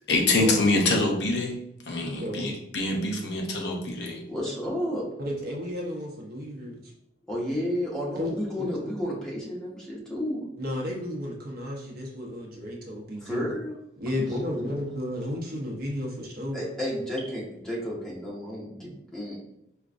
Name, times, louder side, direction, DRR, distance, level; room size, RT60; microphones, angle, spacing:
voice 1, 0.1-1.6 1.9-4.2, left 2 dB, 65° left, 2 dB, 0.6 m, -25 dB
voice 2, 2.0-2.5 5.2-6.9 8.1-8.7 10.6-13.4 14.0-16.6, left 1 dB, 55° right, -1 dB, 0.8 m, -33 dB
voice 3, 4.3-5.0 7.3-10.4 13.2-13.7 14.1-14.7 16.5-19.4, equal, 5° left, -5 dB, 0.9 m, -32 dB
4.9 x 2.2 x 2.5 m, 0.79 s
head